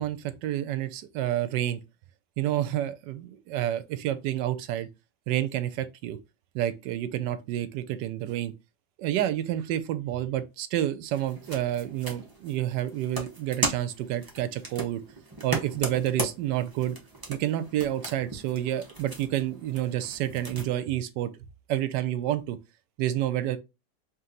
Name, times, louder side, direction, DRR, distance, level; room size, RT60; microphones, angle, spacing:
voice 1, 0.0-1.8 2.4-4.9 5.3-6.2 6.5-8.5 9.0-15.0 15.4-17.0 17.3-21.3 21.7-22.6 23.0-23.6, right 12 dB, 80° right, 1.2 m, -29 dB
sound 1, 11.1-20.7, right 2 dB, 15° right, 0.7 m, -37 dB
3.3 x 3.0 x 3.7 m
omnidirectional pair, 1.9 m